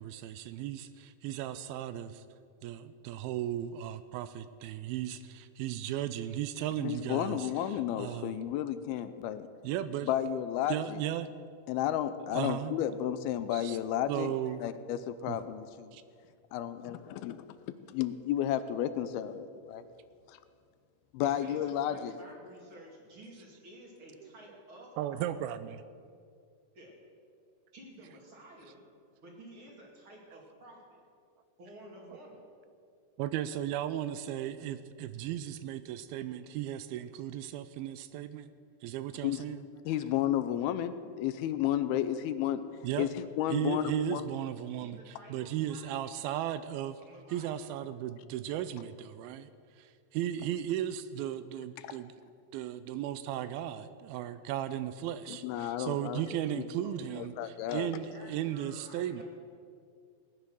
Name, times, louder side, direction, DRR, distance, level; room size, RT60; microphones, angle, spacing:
voice 1, 0.0-2.2 2.6-8.4 9.6-10.1 10.7-11.3 12.3-12.8 13.5-13.8 14.1-14.6 15.3-15.4 15.9-16.0 24.2-24.6 25.0-25.8 33.2-38.5 38.8-39.6 42.8-43.1 43.5-47.0 47.3-49.5 49.8-52.1 52.5-59.2, right 11 dB, 85° right, 13 dB, 2.4 m, -36 dB
voice 2, 6.8-9.5 10.0-11.0 11.7-14.3 14.6-15.9 16.5-17.4 17.9-19.8 20.3-20.4 21.1-22.2 39.2-39.4 39.9-42.6 43.0-44.2 51.8-52.0 55.3-56.6 57.2-57.9, left 11 dB, 90° left, 12 dB, 2.6 m, -32 dB
voice 3, 21.2-25.3 26.7-26.9 27.7-28.8 29.2-31.0 31.6-32.4 44.6-45.9 47.0-47.5 56.8-57.0 57.3-57.4 57.8-59.2, right 1 dB, 35° right, -1 dB, 2.9 m, -52 dB
18.0 x 10.0 x 6.2 m, 2.3 s
omnidirectional pair, 4.4 m